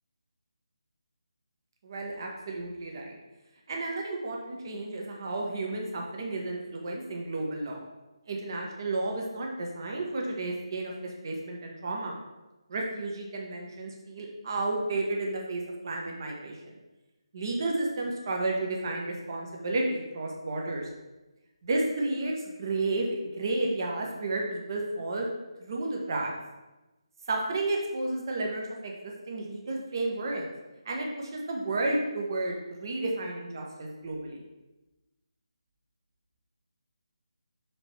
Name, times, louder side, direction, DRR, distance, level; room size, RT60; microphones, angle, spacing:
voice 1, 1.8-3.2 3.7-7.8 8.3-12.2 12.7-16.7 17.3-20.9 21.6-22.3 22.6-25.3 25.6-26.3 27.3-30.5 30.8-34.4, right 2 dB, 45° right, 0 dB, 1.4 m, -32 dB
6.0 x 5.0 x 4.6 m, 1.1 s
figure-of-eight pair, 160°, 3 cm